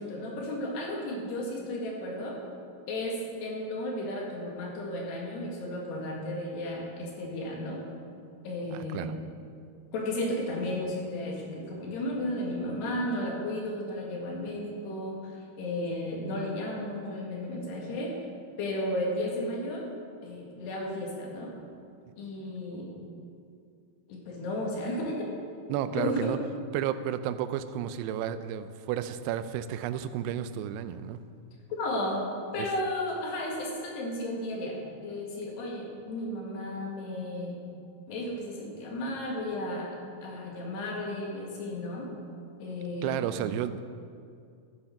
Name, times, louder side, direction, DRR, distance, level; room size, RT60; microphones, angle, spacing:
voice 1, 0.0-2.4 2.9-7.8 8.4-9.2 9.9-18.2 18.6-19.9 20.2-21.5 22.2-23.0 24.1-25.3 25.9-26.4 31.8-37.6 38.1-42.1 42.6-43.4, left 1 dB, 85° left, -2 dB, 4.1 m, -34 dB
voice 2, 8.7-9.1 25.7-26.4 26.7-31.2 32.6-32.7 43.0-43.8, right 10 dB, 90° right, 12 dB, 2.7 m, -32 dB
13.5 x 8.9 x 5.8 m, 2.3 s
omnidirectional pair, 4.7 m